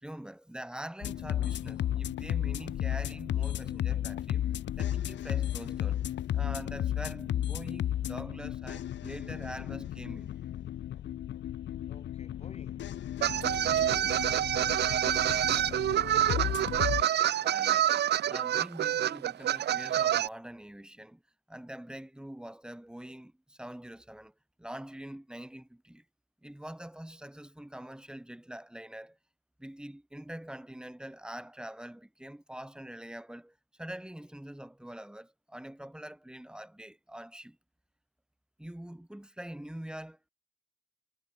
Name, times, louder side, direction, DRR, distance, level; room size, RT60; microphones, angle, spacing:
voice 1, 0.0-6.0 6.3-10.3 17.4-18.0 18.3-21.2 21.5-24.3 24.6-26.0 26.4-29.2 29.6-37.6 38.6-40.3, right 1 dB, 5° right, 6.7 m, -44 dB
sound 1, 1.0-17.0, left 11 dB, 90° left, 1.5 m, -34 dB
voice 2, 11.8-12.9 13.3-16.9, left 5 dB, 35° left, 3.5 m, -51 dB
sound 2, 13.2-20.3, right 11 dB, 70° right, 0.7 m, -27 dB
wide cardioid pair, 145°, 18 cm